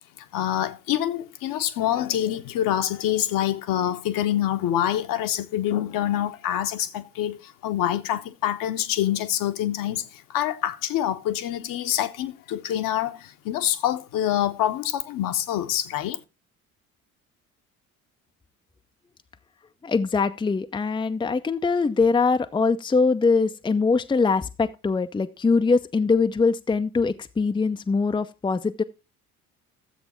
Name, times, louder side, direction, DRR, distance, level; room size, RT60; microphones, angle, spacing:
voice 1, 0.3-16.2, left 11 dB, 50° left, 1.1 m, -26 dB
voice 2, 19.8-28.8, left 4 dB, 10° left, 0.6 m, -22 dB
13.0 x 7.9 x 4.3 m
figure-of-eight pair, 50°, 43 cm